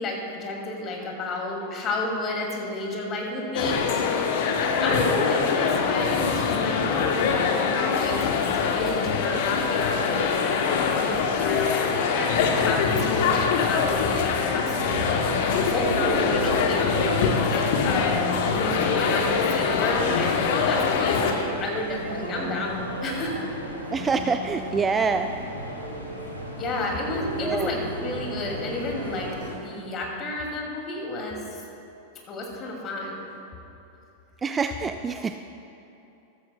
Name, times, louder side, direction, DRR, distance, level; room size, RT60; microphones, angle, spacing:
voice 1, 0.0-3.8 4.6-15.3 15.6-20.3 20.7-23.4 26.6-31.6 32.3-33.3, left 2 dB, 30° left, -1 dB, 2.3 m, -31 dB
sound 1, 3.5-21.3, left 5 dB, 50° left, 1.0 m, -24 dB
sound 2, 14.8-29.6, right 1 dB, 90° right, 1.8 m, -35 dB
voice 2, 23.9-25.3 27.4-27.8 34.4-35.4, right 5 dB, 20° right, 8 dB, 0.3 m, -26 dB
14.5 x 14.0 x 2.2 m, 2.9 s
figure-of-eight pair, 90°, 0 cm